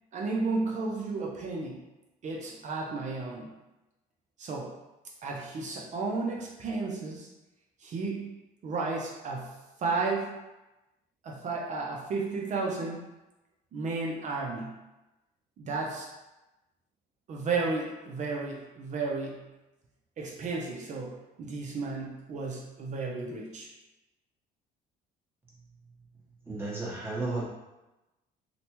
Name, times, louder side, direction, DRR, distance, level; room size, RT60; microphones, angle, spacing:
voice 1, 0.1-1.8 2.2-3.5 4.4-4.7 5.2-7.3 7.8-9.5 9.8-10.3 11.2-13.0 13.7-14.8 15.6-16.1 17.3-19.4 20.2-23.7, right 3 dB, 45° right, -2 dB, 0.5 m, -33 dB
voice 2, 26.4-27.4, right 2 dB, 15° right, -7 dB, 1.0 m, -33 dB
3.0 x 2.1 x 2.9 m, 1.0 s
cardioid pair, 110°, 17 cm